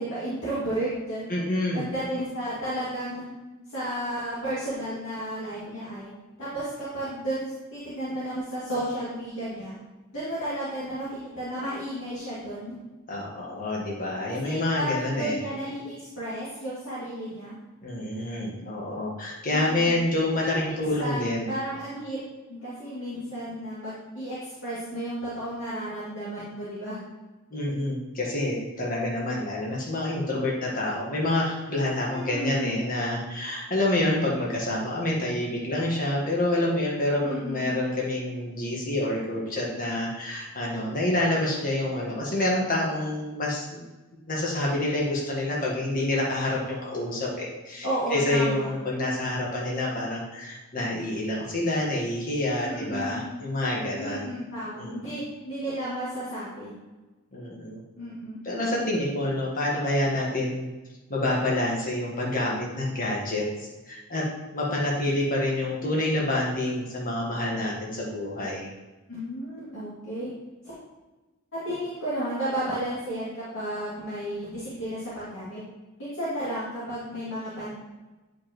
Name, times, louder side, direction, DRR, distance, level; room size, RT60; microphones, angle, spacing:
voice 1, 0.0-1.2 1.7-3.3 3.7-6.1 6.4-9.8 10.1-12.8 14.3-17.6 19.5-20.0 20.6-22.2 22.5-27.0 32.1-32.8 37.2-37.7 47.8-48.7 52.6-53.3 54.0-56.7 57.9-58.4 69.1-70.3 70.6-70.7 71.6-75.6 76.0-77.7, right 1 dB, 60° left, -10 dB, 2.3 m, -33 dB
voice 2, 1.3-1.8 13.1-15.4 17.8-21.5 27.5-43.8 44.3-54.3 54.8-54.9 57.3-57.8 58.4-60.7 61.1-64.2 64.5-68.7, left 1 dB, 40° left, -4 dB, 1.5 m, -27 dB
9.6 x 5.1 x 3.1 m, 1.2 s
head